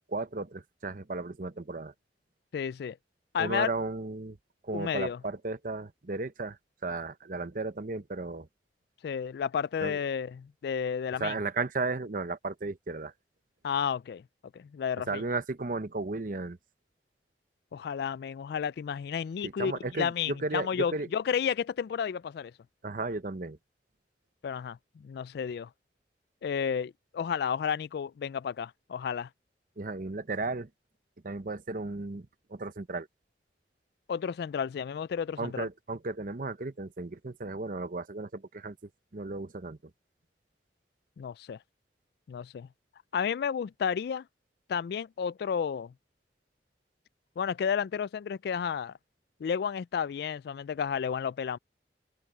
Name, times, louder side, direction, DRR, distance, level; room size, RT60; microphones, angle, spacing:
voice 1, 0.1-1.9 3.4-4.4 4.6-8.5 9.8-10.0 11.2-13.1 15.1-16.6 19.4-21.1 22.8-23.6 29.8-30.7 31.2-33.1 35.4-39.8, right 3 dB, 50° right, 0.8 m, -34 dB
voice 2, 2.5-3.0 3.3-3.7 4.7-5.2 9.0-11.4 13.6-14.2 14.5-15.2 17.7-22.5 24.4-25.7 26.4-29.3 34.1-35.7 41.2-41.6 42.3-42.7 43.1-44.2 44.7-45.9 47.4-48.9 49.4-51.6, left 7 dB, 65° left, 0.3 m, -32 dB
head